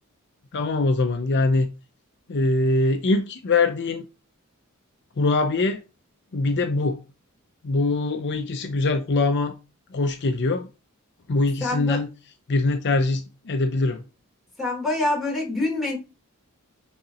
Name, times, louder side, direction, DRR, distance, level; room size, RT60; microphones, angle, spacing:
voice 1, 0.5-1.7 2.3-4.1 5.2-5.8 6.3-7.0 7.6-9.5 9.9-10.7 11.3-12.1 12.5-14.0, left 3 dB, 55° left, 0.6 m, -23 dB
voice 2, 11.6-12.0 14.6-16.0, left 2 dB, ahead, 3.4 m, -25 dB
9.3 x 3.9 x 2.9 m
head